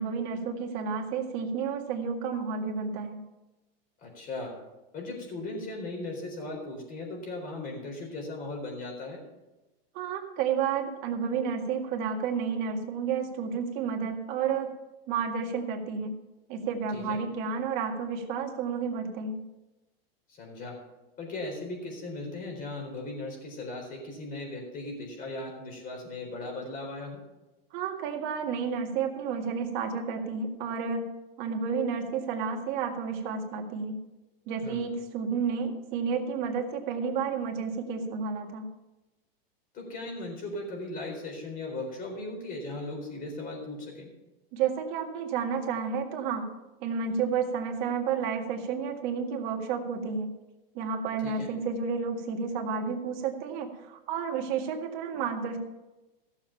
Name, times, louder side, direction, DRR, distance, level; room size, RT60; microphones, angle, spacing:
voice 1, 0.0-3.2 9.9-14.7 15.1-16.2 16.5-19.4 27.7-34.0 34.5-38.7 44.5-46.5 46.8-50.3 50.7-55.6, right 6 dB, 50° right, 3 dB, 2.1 m, -31 dB
voice 2, 4.0-4.6 4.9-9.2 16.9-17.2 20.3-20.8 21.2-27.2 34.6-34.8 39.7-44.1 51.2-51.5, left 2 dB, 30° left, 1 dB, 4.2 m, -37 dB
15.5 x 7.2 x 5.7 m, 1.0 s
supercardioid pair, 140°, 30 cm